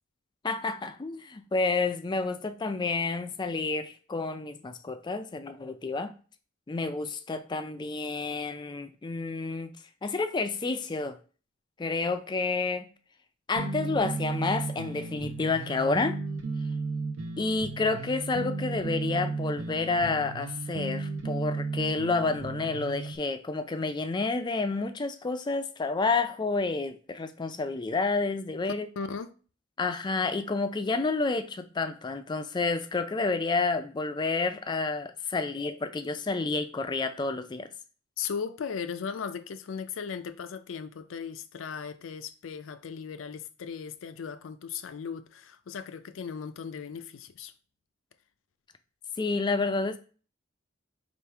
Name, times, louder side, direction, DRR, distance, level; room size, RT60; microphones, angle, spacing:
voice 1, 0.4-6.1 6.7-9.7 10.0-11.2 11.8-12.9 13.5-16.2 17.4-28.9 29.8-37.7 49.2-50.0, left 3 dB, 25° left, 0.3 m, -29 dB
sound 1, 13.6-23.2, right 3 dB, 80° right, 0.6 m, -34 dB
voice 2, 29.0-29.3 38.2-47.5, left 6 dB, 90° left, 0.4 m, -37 dB
3.5 x 2.5 x 4.4 m
head